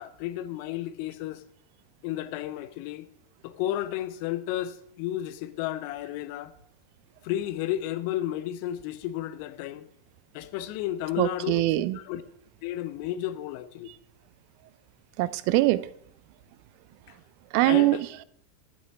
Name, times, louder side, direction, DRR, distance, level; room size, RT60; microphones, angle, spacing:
voice 1, 0.0-1.4 2.0-3.1 3.4-6.5 7.2-9.8 10.3-12.2 12.6-13.9 17.6-18.0, left 13 dB, 45° left, 0.9 m, -32 dB
voice 2, 11.2-12.0 15.2-15.9 17.5-18.0, right 18 dB, 45° right, 0.6 m, -22 dB
12.5 x 8.7 x 6.1 m
figure-of-eight pair, 90°, 0 cm